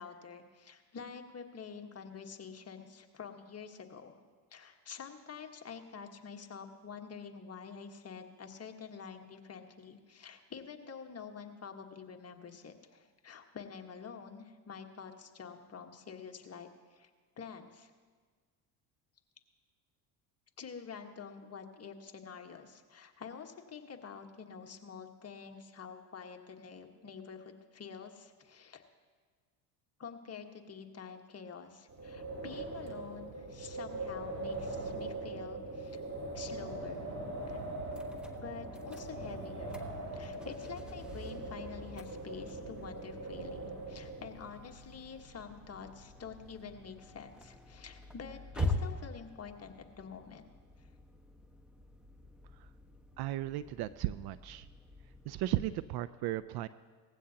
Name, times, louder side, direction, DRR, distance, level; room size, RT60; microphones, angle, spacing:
voice 1, 0.0-4.2 4.5-17.1 17.4-17.9 20.6-28.8 30.0-36.0 36.3-37.1 37.5-37.6 38.4-39.8 40.1-50.4, left 6 dB, 30° left, 4 dB, 1.4 m, -47 dB
Wind, 31.9-44.5, right 2 dB, 30° right, 3.3 m, -41 dB
sound 1, 37.9-55.9, left 1 dB, ahead, 1.3 m, -44 dB
voice 2, 53.2-54.7 55.3-56.7, right 14 dB, 50° right, 16 dB, 0.5 m, -35 dB
19.0 x 15.0 x 2.9 m, 1.5 s
supercardioid pair, 80°, 50 cm